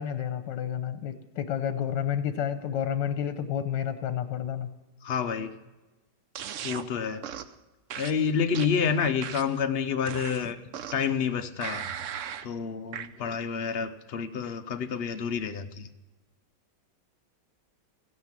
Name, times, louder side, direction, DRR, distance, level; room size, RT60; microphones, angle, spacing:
voice 1, 0.0-4.7, left 9 dB, 80° left, 10 dB, 1.4 m, -30 dB
voice 2, 5.0-5.5 6.6-7.2 7.9-10.6 10.9-11.9 12.4-15.9, left 6 dB, 60° left, 8 dB, 0.6 m, -29 dB
sound 1, 6.3-6.9 7.2-7.5 7.9-9.6 10.1-11.1 11.6-12.5 12.9-13.1, right 9 dB, 65° right, 0.8 m, -37 dB
15.5 x 9.5 x 7.4 m, 1.1 s
omnidirectional pair, 1.9 m